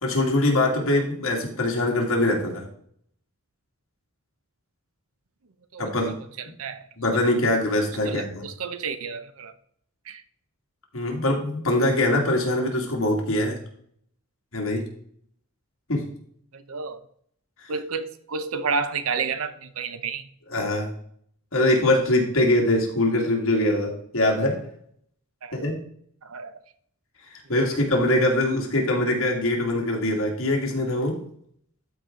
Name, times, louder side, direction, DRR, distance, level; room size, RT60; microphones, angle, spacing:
voice 1, 0.0-2.7 5.8-6.2 7.0-8.4 10.9-13.6 14.5-14.9 15.9-16.0 20.5-20.9 21.5-24.6 25.5-25.8 27.5-31.2, left 1 dB, 70° left, 2.3 m, -23 dB
voice 2, 5.7-6.9 8.0-9.5 10.1-10.2 16.5-17.0 17.7-20.3 25.4-25.6 26.2-26.6, right 5 dB, 80° right, 0.8 m, -31 dB
12.5 x 4.8 x 3.8 m
head